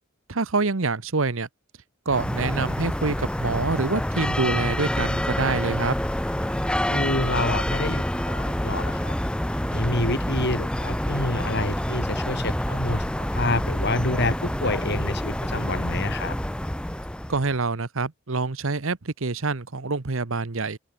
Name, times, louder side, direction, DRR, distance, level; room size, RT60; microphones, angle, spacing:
voice 1, 0.3-1.5 2.1-5.9 17.3-20.8, right 3 dB, 70° right, 1.1 m, -26 dB
sound 1, 2.1-17.6, left 1 dB, 5° left, 0.6 m, -27 dB
voice 2, 6.9-9.2 9.6-16.4, left 2 dB, 50° left, 4.9 m, -28 dB
open air
head